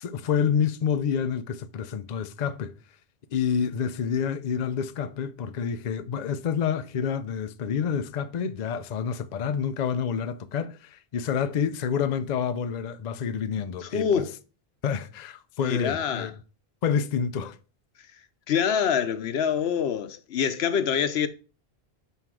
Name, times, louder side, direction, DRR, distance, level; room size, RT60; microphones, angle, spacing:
voice 1, 0.0-2.7 3.3-14.2 14.8-16.3 16.8-17.6, left 7 dB, 50° left, 0.6 m, -28 dB
voice 2, 13.8-14.4 15.6-16.3 18.5-21.3, left 7 dB, 85° left, 0.9 m, -25 dB
5.6 x 4.4 x 6.0 m
omnidirectional pair, 1.0 m